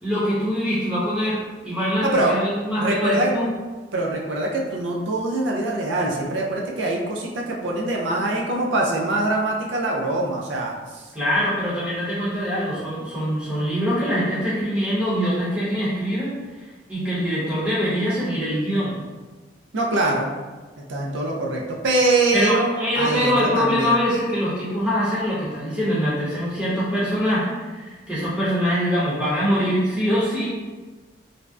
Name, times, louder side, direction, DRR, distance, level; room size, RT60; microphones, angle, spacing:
voice 1, 0.0-3.5 11.1-19.0 22.3-30.5, equal, 5° right, -10 dB, 0.7 m, -23 dB
voice 2, 2.0-2.3 2.8-3.3 3.9-11.1 19.7-20.3 20.9-24.0, right 2 dB, 75° right, -1 dB, 0.4 m, -23 dB
2.6 x 2.1 x 2.3 m, 1.3 s
head